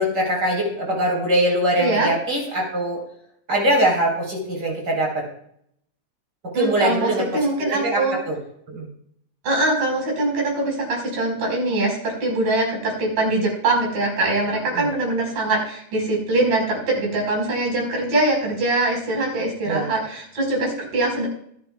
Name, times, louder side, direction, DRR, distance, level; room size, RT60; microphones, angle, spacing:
voice 1, 0.0-3.0 3.5-5.3 6.4-7.2 7.7-8.4 8.7-8.9 14.7-14.9 19.7-19.9, right 1 dB, 30° right, 0 dB, 4.7 m, -22 dB
voice 2, 1.8-2.1 6.5-8.2 9.4-21.3, right 2 dB, 80° right, -1 dB, 6.7 m, -23 dB
25.5 x 10.5 x 2.4 m, 0.68 s
omnidirectional pair, 3.9 m